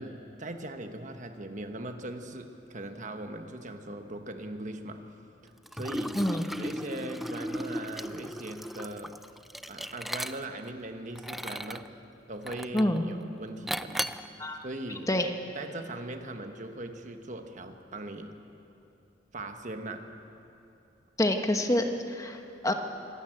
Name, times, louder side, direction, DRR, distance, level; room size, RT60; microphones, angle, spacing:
voice 1, 0.0-5.0 5.7-6.2 6.5-9.2 9.7-11.9 12.3-14.1 14.6-15.1 15.5-18.4 19.3-20.1, right 1 dB, 45° right, 6 dB, 1.2 m, -40 dB
Liquid, 5.7-10.7 11.1-11.9 12.5-13.0 13.7-14.3, equal, ahead, 0.4 m, -36 dB
voice 2, 6.1-6.5 12.7-13.1 14.4-14.6 15.1-15.3 21.2-22.7, left 1 dB, 20° left, 5 dB, 1.1 m, -27 dB
25.0 x 12.5 x 9.0 m, 2.8 s
head